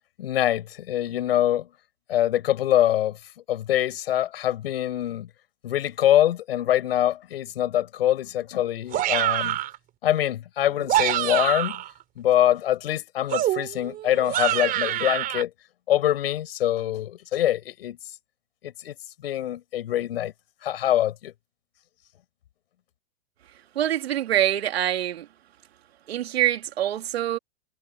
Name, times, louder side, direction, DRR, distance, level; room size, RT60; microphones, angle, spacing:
voice 1, 0.2-1.7 2.1-3.2 3.5-5.3 5.6-9.6 10.0-11.8 12.2-15.5 15.9-18.0 18.6-18.9 19.2-20.3 20.6-21.3, left 12 dB, 70° left, 7.6 m, -24 dB
sound 1, 8.9-9.8 10.7-11.9 13.3-15.4, right 13 dB, 25° right, 4.2 m, -25 dB
voice 2, 23.7-25.3 26.1-27.4, right 12 dB, 75° right, 2.7 m, -25 dB
hypercardioid pair, 140°, 31 cm